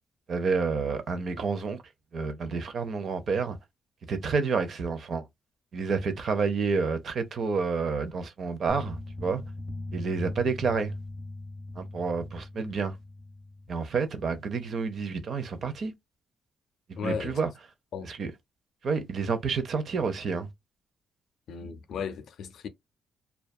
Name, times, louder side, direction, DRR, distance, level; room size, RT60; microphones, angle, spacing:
voice 1, 0.3-1.8 2.1-3.6 4.1-5.3 5.7-9.4 9.9-10.9 11.8-13.0 13.7-15.9 17.0-17.5 18.0-18.3 18.8-20.5, right 5 dB, 45° right, 0.5 m, -29 dB
sound 1, 8.7-13.7, left 2 dB, 5° left, 0.7 m, -40 dB
voice 2, 17.0-17.4 17.9-18.1 21.5-22.7, left 6 dB, 65° left, 0.4 m, -35 dB
2.6 x 2.2 x 2.2 m
cardioid pair, 145°, 0 cm